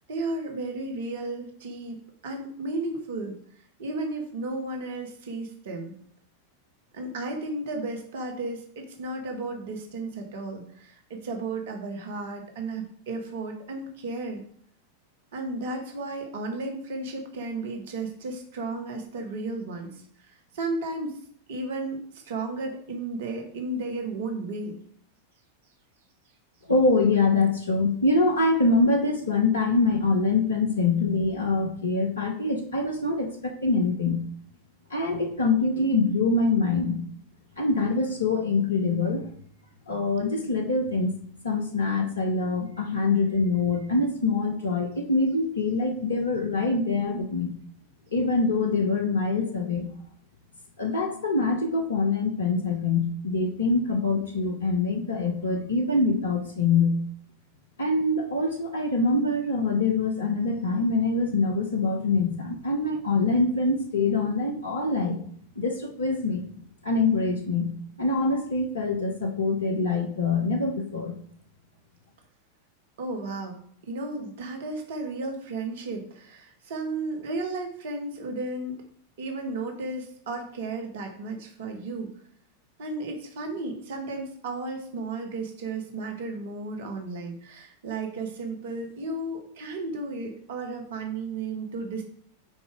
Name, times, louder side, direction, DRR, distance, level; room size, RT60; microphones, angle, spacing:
voice 1, 0.1-3.3 3.8-6.0 6.9-14.4 15.3-21.2 21.5-24.8 73.0-78.8 79.2-82.1 82.8-92.0, right 2 dB, 55° right, 3 dB, 1.1 m, -34 dB
voice 2, 26.7-34.2 34.9-37.0 37.6-39.3 39.9-41.1 41.4-47.5 48.1-49.9 50.8-57.0 57.8-65.2 65.6-66.4 66.8-67.7 68.0-71.1, left 3 dB, 70° left, 4 dB, 0.9 m, -24 dB
5.3 x 4.1 x 4.8 m, 0.63 s
figure-of-eight pair, 90°, 0 cm